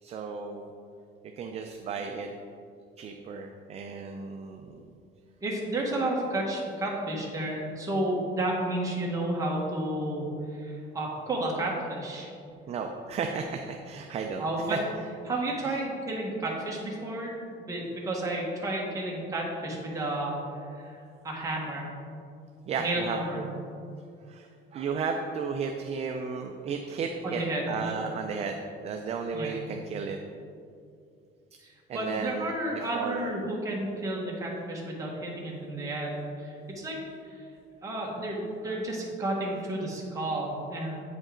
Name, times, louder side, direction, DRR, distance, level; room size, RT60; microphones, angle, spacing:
voice 1, 0.0-0.7 1.4-2.3 3.0-4.8 12.7-14.8 15.6-15.8 22.7-23.5 24.3-30.2 31.9-33.3 38.6-38.8 39.4-39.5, right 5 dB, 35° right, 4 dB, 0.4 m, -34 dB
voice 2, 5.4-10.2 10.6-12.3 14.4-14.8 15.3-20.4 20.8-21.0 21.2-21.9 22.8-23.4 27.2-27.7 29.3-29.5 31.6-37.0 37.2-37.3 37.8-41.0, right 1 dB, 15° right, -3 dB, 1.2 m, -32 dB
8.4 x 5.2 x 3.7 m, 2.4 s
cardioid pair, 170°, 20 cm